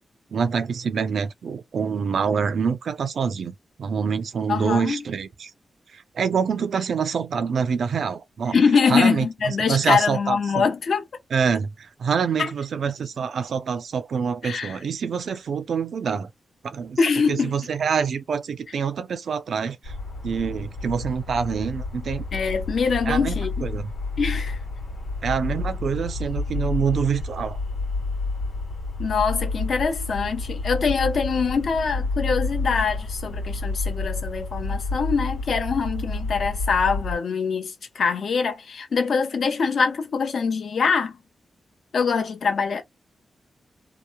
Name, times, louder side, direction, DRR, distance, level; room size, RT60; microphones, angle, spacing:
voice 1, 0.3-5.5 5.9-8.6 8.9-10.6 11.3-16.3 16.6-17.0 17.3-19.9 20.2-22.2 23.1-23.3 23.6-23.9 25.2-27.6, right 6 dB, 65° right, 0.4 m, -26 dB
voice 2, 4.5-5.0 8.5-11.0 12.4-12.5 14.4-14.8 17.0-17.5 22.3-23.5 24.2-24.6 29.0-41.2 41.9-42.8, left 5 dB, 60° left, 0.8 m, -23 dB
sound 1, 19.8-37.1, left 3 dB, 85° left, 1.3 m, -30 dB
2.9 x 2.0 x 2.2 m
wide cardioid pair, 165°, 0 cm